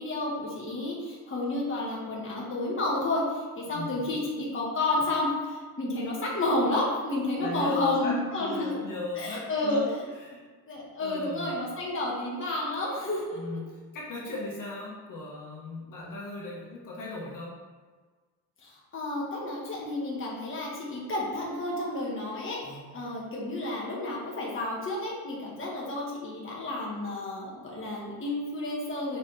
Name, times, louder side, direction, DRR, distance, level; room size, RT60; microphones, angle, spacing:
voice 1, 0.0-8.8 9.2-9.8 10.7-13.4 18.6-29.2, left 2 dB, 35° left, -4 dB, 1.6 m, -31 dB
voice 2, 3.7-4.1 7.4-9.9 10.2-10.4 11.0-11.6 13.3-17.6 22.6-23.1, left 2 dB, 55° left, -4 dB, 1.7 m, -38 dB
6.6 x 5.1 x 3.4 m, 1.4 s
cardioid pair, 125°, 38 cm